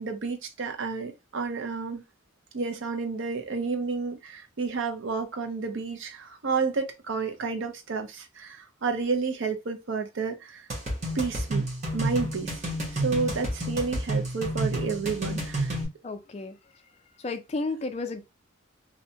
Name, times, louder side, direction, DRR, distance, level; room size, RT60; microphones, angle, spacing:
voice 1, 0.0-2.0 2.5-10.7 11.1-11.7 11.9-12.6 12.9-15.8, right 4 dB, 65° right, 0.5 m, -30 dB
sound 1, 10.7-15.9, right 1 dB, 35° right, 0.9 m, -30 dB
voice 2, 16.0-16.6 17.2-18.2, left 3 dB, 30° left, 0.3 m, -32 dB
2.6 x 2.1 x 2.6 m
head